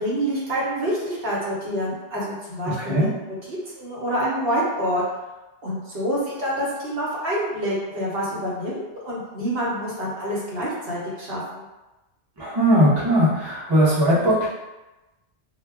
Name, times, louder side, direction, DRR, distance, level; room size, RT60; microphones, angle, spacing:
voice 1, 0.0-5.0 5.6-11.6, equal, 60° right, -6 dB, 0.9 m, -27 dB
voice 2, 2.8-3.1 12.4-14.5, equal, 25° right, -8 dB, 0.6 m, -19 dB
2.2 x 2.1 x 3.4 m, 1.1 s
omnidirectional pair, 1.2 m